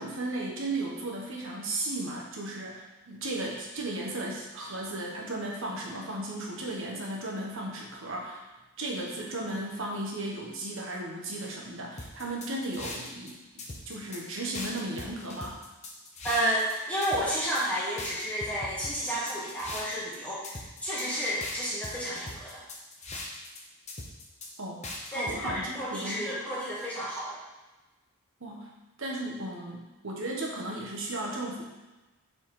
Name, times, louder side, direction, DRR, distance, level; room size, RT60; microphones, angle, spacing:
voice 1, 0.0-8.4 8.8-15.6 24.6-24.8 25.1-26.3 28.4-28.7 29.0-31.6, right 1 dB, 60° right, -1 dB, 1.4 m, -35 dB
sound 1, 12.0-13.3 13.6-14.2 14.5-16.7 17.0-17.6 18.0-20.2 20.4-21.1 21.4-23.6 23.9-24.5 24.8-25.6, left 2 dB, 30° left, 0.9 m, -40 dB
voice 2, 16.2-22.6 25.1-27.4, equal, 5° left, -9 dB, 2.1 m, -31 dB
7.5 x 4.4 x 3.8 m, 1.1 s
head